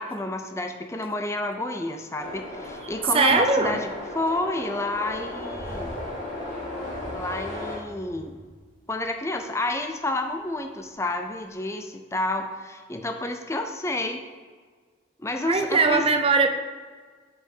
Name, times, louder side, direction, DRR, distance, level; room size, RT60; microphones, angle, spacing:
voice 1, 0.0-6.0 7.1-8.4 8.9-14.2 15.2-16.0, left 2 dB, 15° left, 5 dB, 0.5 m, -30 dB
sound 1, 2.2-7.8, left 1 dB, 40° left, 2.4 m, -36 dB
voice 2, 3.1-3.8 15.5-16.5, right 4 dB, 30° right, 6 dB, 0.6 m, -20 dB
sound 2, 4.9-9.1 9.5-9.7 10.3-11.0 11.4-11.5, equal, 10° right, 2.4 m, -44 dB
6.2 x 5.7 x 5.5 m, 1.5 s
head